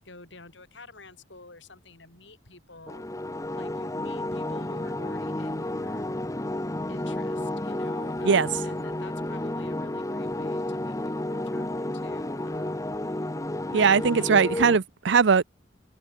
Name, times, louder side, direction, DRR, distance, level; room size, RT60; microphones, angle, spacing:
voice 1, 0.0-3.0 3.6-6.1 6.9-13.2 13.8-14.4, left 2 dB, 70° left, 5.6 m, -48 dB
sound 1, 2.9-14.8, left 1 dB, 15° left, 1.1 m, -31 dB
voice 2, 13.7-15.4, right 5 dB, 65° right, 0.6 m, -20 dB
head